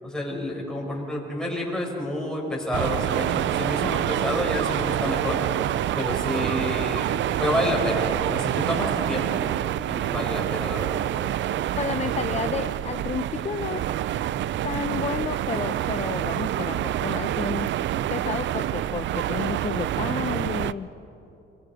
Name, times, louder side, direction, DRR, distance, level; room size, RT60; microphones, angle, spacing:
voice 1, 0.0-5.4 5.9-9.4 9.8-11.1 12.1-12.3, left 1 dB, 5° left, -3 dB, 6.6 m, -29 dB
sound 1, 2.7-20.7, right 12 dB, 70° right, 0.5 m, -27 dB
voice 2, 11.7-13.8 14.6-17.7 18.1-20.9, left 6 dB, 35° left, 10 dB, 0.7 m, -31 dB
26.0 x 23.5 x 5.0 m, 2.9 s
cardioid pair, 90°, 20 cm